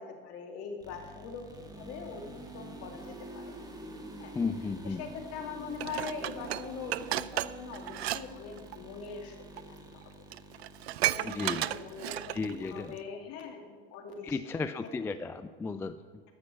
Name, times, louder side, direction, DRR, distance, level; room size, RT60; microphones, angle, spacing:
voice 1, 0.0-2.2 2.5-3.5 4.2-4.3 4.8-9.4 9.7-10.0 11.1-14.9, left 5 dB, 50° left, 3 dB, 2.3 m, -42 dB
sound 1, 0.8-13.0, right 1 dB, 10° right, 1.6 m, -48 dB
voice 2, 4.4-5.0 11.2-11.6 12.3-13.0 14.2-16.2, left 4 dB, 10° left, 11 dB, 0.3 m, -34 dB
Dishes pots and pans, 5.8-8.2 8.5-8.8 9.6-9.7 10.0-10.1 10.3-12.5 13.0-13.1, right 15 dB, 75° right, 0.5 m, -33 dB
13.5 x 6.0 x 6.6 m, 1.4 s
hypercardioid pair, 90°, 32 cm